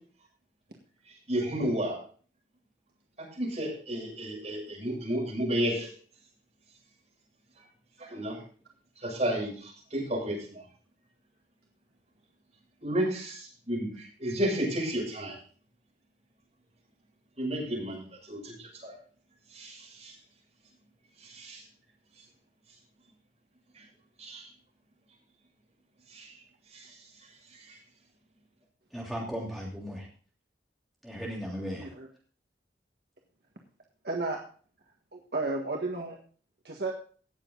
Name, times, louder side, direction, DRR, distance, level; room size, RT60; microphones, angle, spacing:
voice 1, 1.3-2.0 3.2-5.9 8.0-8.4 9.0-10.6 12.8-15.4 17.4-18.0 18.3-19.0 19.5-20.1 21.2-21.6 24.2-24.5 26.1-26.3 26.7-26.9 27.5-27.8, right 1 dB, 40° right, -3 dB, 7.0 m, -32 dB
voice 2, 28.9-30.1 31.0-31.9, equal, ahead, -3 dB, 3.1 m, -36 dB
voice 3, 31.8-32.1 34.0-34.4 35.1-36.2 36.6-36.9, right 3 dB, 60° right, 1 dB, 1.6 m, -32 dB
17.5 x 7.4 x 3.9 m, 0.42 s
head